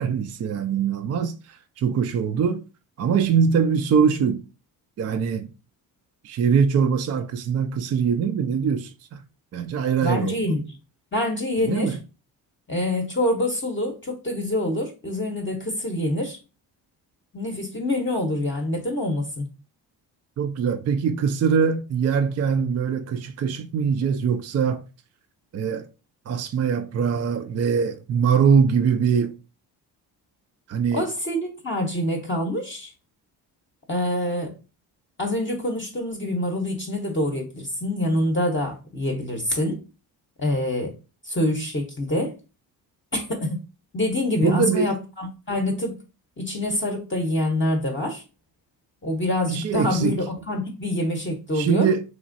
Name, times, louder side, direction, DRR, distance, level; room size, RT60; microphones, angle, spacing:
voice 1, 0.0-2.6 3.0-4.4 5.0-5.5 6.2-9.2 9.5-10.4 11.6-12.0 20.4-24.8 25.5-25.9 26.3-29.3 30.7-31.1 44.4-44.9 49.5-50.2 51.5-52.0, right 6 dB, 35° right, 0.4 m, -22 dB
voice 2, 10.0-10.6 11.1-12.0 12.7-16.4 17.3-19.5 30.9-32.9 33.9-34.5 35.2-39.8 40.4-40.9 41.2-42.4 43.1-43.6 43.9-46.0 46.4-48.2 49.0-51.9, left 1 dB, 25° left, 0.8 m, -26 dB
3.1 x 2.4 x 2.5 m
hypercardioid pair, 55°, 50 cm